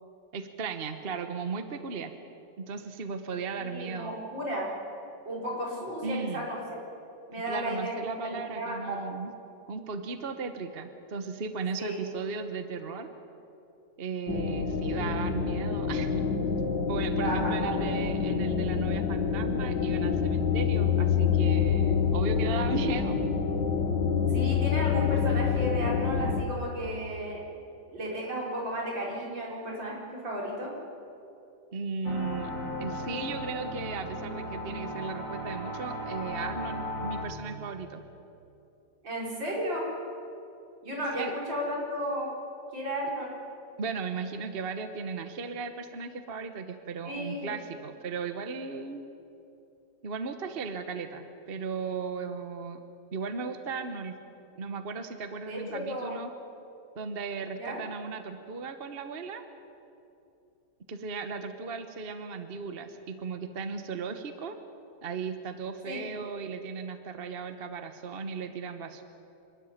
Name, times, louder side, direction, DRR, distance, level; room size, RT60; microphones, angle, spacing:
voice 1, 0.3-2.1 2.6-4.1 6.0-6.5 7.5-9.3 9.7-13.1 14.0-16.2 16.9-23.2 31.7-32.5 32.8-38.0 41.2-41.3 43.8-49.1 50.0-52.8 53.1-54.1 54.6-56.3 56.9-59.4 60.9-64.6 65.0-69.0, right 5 dB, 35° right, 8 dB, 1.1 m, -36 dB
voice 2, 3.6-4.7 5.2-6.8 7.3-9.0 11.8-12.0 17.2-18.1 24.3-27.4 27.9-30.7 39.0-39.9 40.8-42.3 42.7-43.4 47.0-47.5 55.5-56.1 57.6-57.8 65.9-66.0, equal, 75° right, -3 dB, 5.6 m, -34 dB
sound 1, 14.3-26.4, left 6 dB, 70° left, 2.1 m, -27 dB
sound 2, 32.0-37.3, left 1 dB, 40° left, 4.7 m, -36 dB
26.5 x 13.0 x 9.9 m, 2.8 s
omnidirectional pair, 2.0 m